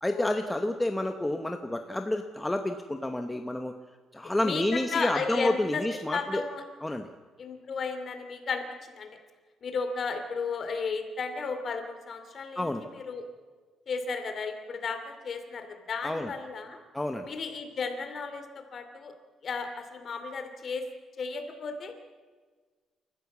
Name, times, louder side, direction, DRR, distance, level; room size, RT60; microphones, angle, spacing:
voice 1, 0.0-3.7 4.1-6.4 6.8-7.1 12.6-12.8 16.0-16.3 16.9-17.3, left 1 dB, 10° left, 6 dB, 1.0 m, -29 dB
voice 2, 4.4-5.8 6.1-6.6 7.4-9.1 9.6-13.2 13.9-16.8 17.2-19.1 19.4-20.8 21.2-21.9, left 5 dB, 40° left, 7 dB, 2.6 m, -34 dB
28.5 x 14.5 x 7.3 m, 1.5 s
cardioid pair, 155°, 0 cm